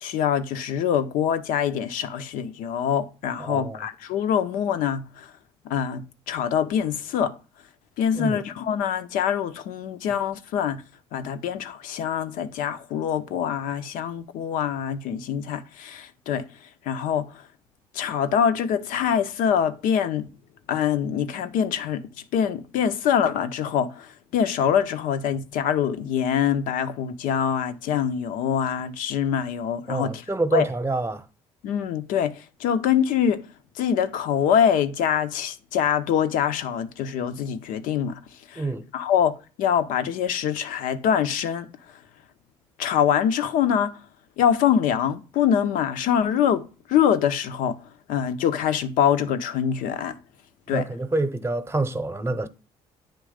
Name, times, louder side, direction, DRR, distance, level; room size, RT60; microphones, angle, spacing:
voice 1, 0.0-5.3 5.6-7.4 8.0-10.8 11.1-16.5 16.8-17.4 17.9-20.3 20.7-30.2 30.5-30.7 31.6-33.5 33.8-38.2 38.5-38.7 38.9-41.7 42.8-44.0 44.4-47.8 48.1-50.2 50.7-50.9, left 8 dB, 75° left, 0.8 m, -24 dB
voice 2, 3.4-3.8 8.1-8.4 29.9-31.2 38.6-38.9 50.7-52.5, right 2 dB, 20° right, 0.9 m, -27 dB
9.0 x 3.1 x 5.0 m
hypercardioid pair, 60°, 14 cm